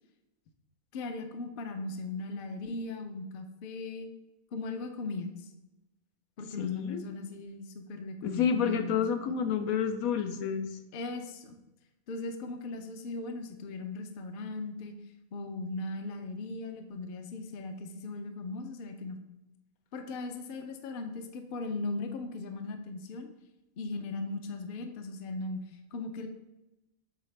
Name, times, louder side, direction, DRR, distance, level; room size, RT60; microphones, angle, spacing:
voice 1, 0.9-4.1 4.5-5.5 6.4-9.0 10.9-11.6 12.1-14.9 15.3-19.2 19.9-23.3 23.8-25.6 25.9-26.3, left 3 dB, 55° left, 6 dB, 0.6 m, -38 dB
voice 2, 6.6-7.0 8.2-10.7, left 7 dB, 80° left, 7 dB, 1.1 m, -29 dB
7.6 x 4.0 x 3.2 m, 0.98 s
omnidirectional pair, 1.5 m